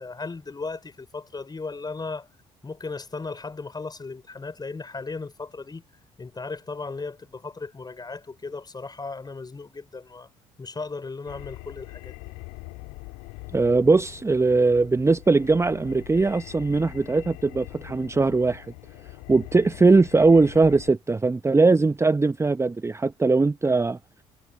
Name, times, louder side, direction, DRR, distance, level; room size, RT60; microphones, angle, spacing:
voice 1, 0.0-2.3 2.6-5.8 6.2-10.3 10.6-12.2, left 4 dB, 25° left, 5.4 m, -36 dB
sound 1, 11.3-20.9, left 29 dB, 70° left, 2.2 m, -43 dB
voice 2, 13.5-18.7 19.3-24.0, right 3 dB, 15° right, 0.9 m, -20 dB
figure-of-eight pair, 50°, 16 cm